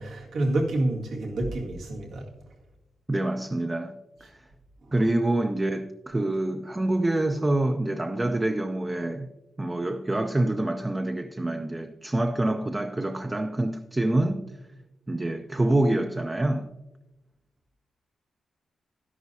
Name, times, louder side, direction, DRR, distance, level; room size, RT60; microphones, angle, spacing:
voice 1, 0.0-2.3, right 1 dB, 85° right, 1.9 m, -28 dB
voice 2, 3.1-4.4 4.9-9.3 9.6-14.6 15.1-16.7, right 1 dB, 15° right, 0.4 m, -26 dB
12.0 x 11.0 x 2.7 m
wide cardioid pair, 135°, 0 cm